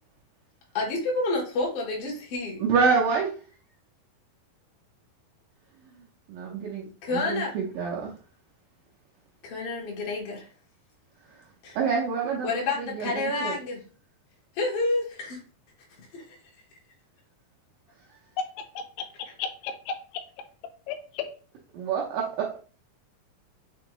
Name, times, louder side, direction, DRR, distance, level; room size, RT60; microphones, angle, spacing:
voice 1, 0.7-2.6 7.0-7.5 9.4-10.5 11.6-11.8 12.4-13.8 14.5-15.4 16.1-16.2, left 2 dB, 65° left, -3 dB, 1.4 m, -29 dB
voice 2, 2.6-3.3 6.3-8.1 11.8-13.5 21.7-22.6, right 5 dB, 75° right, -3 dB, 2.1 m, -27 dB
voice 3, 19.4-20.2 20.9-21.3, left 7 dB, 90° left, 6 dB, 2.6 m, -34 dB
6.1 x 2.7 x 2.9 m, 0.38 s
omnidirectional pair, 4.5 m